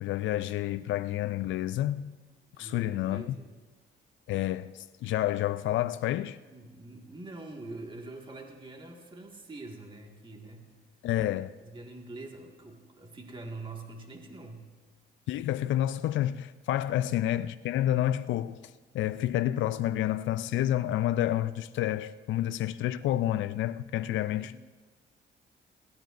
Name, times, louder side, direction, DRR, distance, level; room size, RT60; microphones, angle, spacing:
voice 1, 0.0-2.2 2.6-3.4 4.3-6.4 11.0-11.5 15.3-18.6 18.9-24.6, left 13 dB, 75° left, 0.4 m, -29 dB
voice 2, 2.5-3.6 6.4-10.6 11.6-14.7 16.9-17.1 24.3-24.5, right 2 dB, 25° right, 1.9 m, -44 dB
21.0 x 15.5 x 2.6 m
cardioid pair, 90°, 20 cm